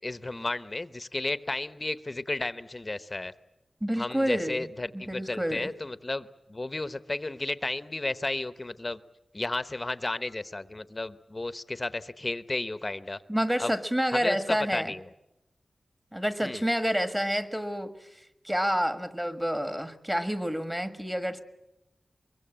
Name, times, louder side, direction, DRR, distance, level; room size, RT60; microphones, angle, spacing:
voice 1, 0.0-3.3 4.0-9.0 9.3-13.2 13.6-13.7 14.1-15.0 16.4-16.6, left 2 dB, 25° left, 14 dB, 0.9 m, -33 dB
voice 2, 3.8-4.7 4.9-5.7 13.3-14.9 16.1-21.4, equal, 10° right, 10 dB, 1.5 m, -29 dB
23.5 x 23.0 x 8.8 m, 0.94 s
wide cardioid pair, 120°, 0 cm